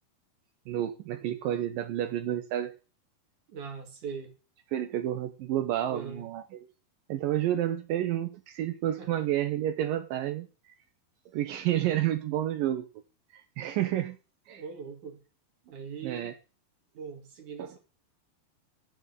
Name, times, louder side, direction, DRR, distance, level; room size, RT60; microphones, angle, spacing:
voice 1, 0.7-2.7 4.7-6.7 7.1-10.5 11.3-12.9 13.3-14.2 14.5-14.6 16.0-16.3 17.6-17.7, right 12 dB, 75° right, 2.4 m, -30 dB
voice 2, 3.5-4.3 5.9-6.3 9.0-9.3 14.5-15.2 15.7-16.4 16.9-17.8, right 6 dB, 55° right, 3.3 m, -41 dB
9.2 x 7.6 x 8.2 m
omnidirectional pair, 4.3 m